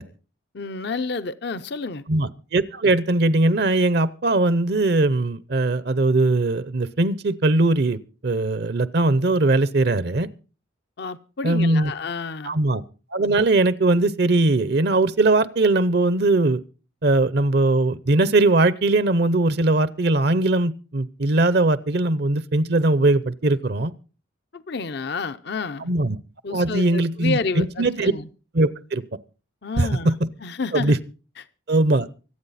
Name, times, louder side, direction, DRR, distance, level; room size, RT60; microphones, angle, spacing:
voice 1, 0.5-2.0 11.0-12.6 24.5-25.9 26.4-28.3 29.6-30.1 30.4-31.0 31.4-31.5, left 4 dB, 55° left, 0.6 m, -30 dB
voice 2, 2.1-10.3 11.4-11.9 12.4-12.8 13.1-16.6 17.0-23.9 25.8-26.2 26.5-28.1 28.5-29.0 29.8-30.1 30.7-31.0 31.7-32.1, right 2 dB, 55° right, 0.7 m, -20 dB
25.0 x 8.6 x 4.1 m
head